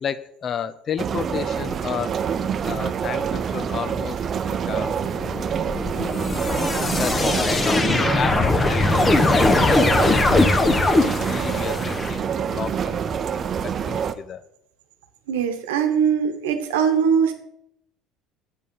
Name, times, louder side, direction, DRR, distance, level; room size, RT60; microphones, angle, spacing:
voice 1, 0.0-2.1 2.6-4.2 4.7-5.0 6.9-14.5, left 7 dB, 45° left, 15 dB, 0.6 m, -32 dB
sound 1, 1.0-14.1, right 7 dB, 45° right, 0.6 m, -26 dB
sound 2, 5.0-12.1, left 2 dB, 30° left, 1.1 m, -20 dB
voice 2, 15.3-17.3, right 7 dB, 85° right, 7 dB, 1.0 m, -21 dB
8.2 x 5.3 x 5.4 m, 0.77 s
hypercardioid pair, 70°, 0 cm